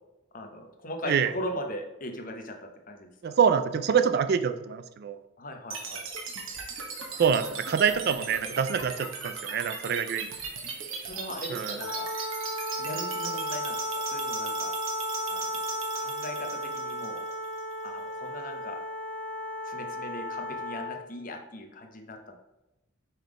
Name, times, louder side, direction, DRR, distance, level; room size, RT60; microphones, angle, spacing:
voice 1, 0.3-3.1 5.4-6.0 11.0-12.1 12.8-14.7 15.3-15.4 16.0-17.3 17.8-18.8 19.6-22.4, left 1 dB, 40° left, 4 dB, 0.8 m, -39 dB
voice 2, 3.2-5.2 7.2-10.3 11.5-11.8, right 7 dB, 45° right, 11 dB, 0.3 m, -26 dB
sound 1, 5.7-17.7, right 4 dB, 65° right, 1.0 m, -38 dB
Wind instrument woodwind instrument, 11.8-21.0, equal, 85° right, 1.4 m, -34 dB
5.6 x 3.7 x 4.8 m, 0.97 s
head